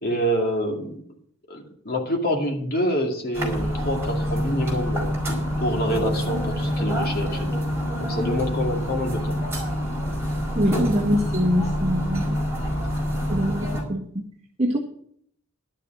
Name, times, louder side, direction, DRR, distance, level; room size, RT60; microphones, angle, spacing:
voice 1, 0.0-1.0 1.5-5.1 5.6-7.5 8.0-9.3, equal, 45° left, 1 dB, 2.4 m, -26 dB
sound 1, 3.3-13.8, equal, 10° right, 5.0 m, -26 dB
voice 2, 10.5-12.4 13.3-14.1 14.6-14.8, equal, 30° right, -3 dB, 1.6 m, -23 dB
11.5 x 7.4 x 7.8 m, 0.62 s
head